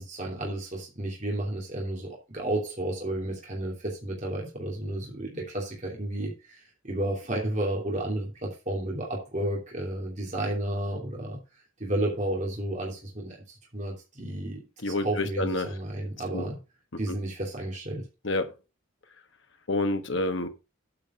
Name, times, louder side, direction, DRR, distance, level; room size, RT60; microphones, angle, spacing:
voice 1, 0.0-11.4 11.8-16.6 17.0-18.0, right 1 dB, 35° right, 3.0 m, -32 dB
voice 2, 14.8-15.7 16.3-16.5 17.1-17.2 18.2-18.5 19.7-20.5, left 2 dB, 65° left, 1.4 m, -28 dB
8.7 x 5.3 x 5.8 m
head